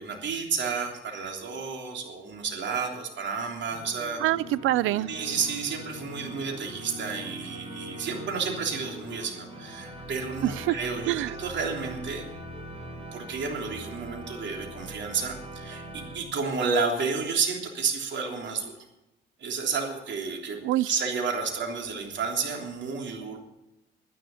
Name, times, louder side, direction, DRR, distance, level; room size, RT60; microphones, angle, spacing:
voice 1, 0.0-4.2 5.1-12.2 13.1-18.7 19.4-20.6 20.8-23.4, right 5 dB, 65° right, 3.3 m, -31 dB
sound 1, 3.7-16.2, right 1 dB, 25° right, 6.0 m, -41 dB
voice 2, 4.2-5.1 10.4-10.8 11.1-11.3 20.6-20.9, right 15 dB, 85° right, 0.5 m, -25 dB
11.0 x 11.0 x 9.0 m
cardioid pair, 90°, 20 cm